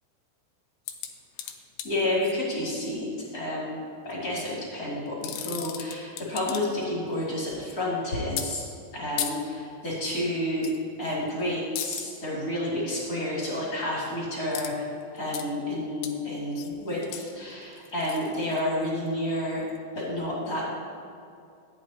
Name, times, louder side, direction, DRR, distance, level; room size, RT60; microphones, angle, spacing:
sound 1, 0.9-2.4 4.1-4.5 5.1-6.9 7.1-7.7 8.4-8.5 9.2-9.3 10.6-10.8 11.1-11.3 11.8-12.1 14.5-14.7 15.0-15.5 16.0-16.1 16.5-19.1 19.7-19.8, left 10 dB, 85° left, 2.9 m, -36 dB
voice 1, 1.8-3.8 4.0-8.6 8.9-10.7 11.0-14.9 15.1-19.6 19.9-20.6, left 1 dB, 30° left, -6 dB, 1.7 m, -30 dB
14.0 x 9.0 x 2.8 m, 2.5 s
omnidirectional pair, 5.0 m